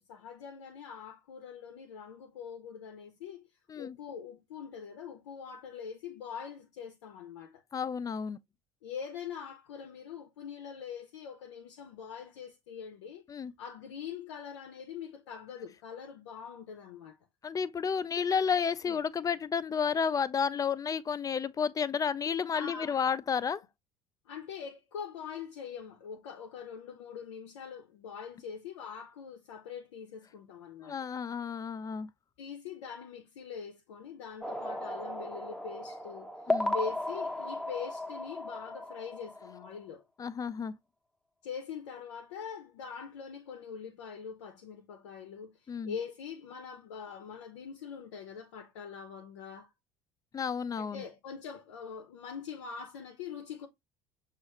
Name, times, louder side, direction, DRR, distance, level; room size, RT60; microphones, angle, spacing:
voice 1, 0.1-3.5 3.8-7.6 8.8-13.2 13.6-17.2 18.8-19.0 22.5-23.0 24.3-31.1 32.4-36.3 36.7-40.0 41.4-49.7 50.7-53.7, left 7 dB, 80° left, 0.6 m, -43 dB
voice 2, 7.7-8.4 13.3-13.5 17.4-23.6 30.8-32.1 36.5-36.7 40.2-40.7 45.7-45.9 50.3-51.0, left 6 dB, 25° left, 0.4 m, -31 dB
sound 1, 34.4-39.8, left 1 dB, 5° left, 0.7 m, -35 dB
6.2 x 2.4 x 3.0 m
hypercardioid pair, 65°, 15 cm